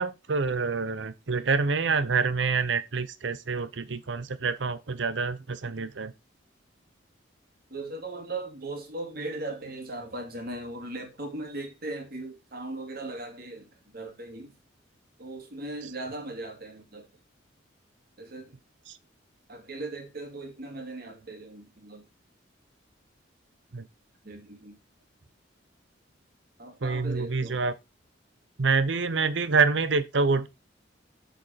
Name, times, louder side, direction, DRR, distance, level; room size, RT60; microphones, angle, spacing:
voice 1, 0.0-6.1 18.9-19.0 23.7-23.9 26.8-27.7 28.6-30.5, right 4 dB, 70° right, 0.8 m, -26 dB
voice 2, 7.7-14.6 15.2-17.1 18.2-18.6 19.5-22.1 24.2-24.8 26.6-27.6, right 2 dB, 55° right, 2.4 m, -38 dB
6.8 x 5.4 x 5.7 m
head